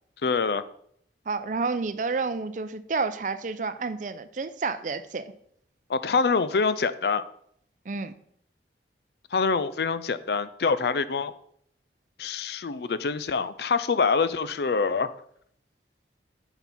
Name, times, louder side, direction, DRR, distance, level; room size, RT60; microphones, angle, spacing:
voice 1, 0.2-0.6 5.9-7.2 9.3-11.3 12.2-15.1, left 4 dB, 65° left, 14 dB, 0.4 m, -25 dB
voice 2, 1.3-5.3 7.9-8.1, right 4 dB, 45° right, 12 dB, 0.5 m, -30 dB
7.9 x 6.0 x 4.2 m, 0.67 s
head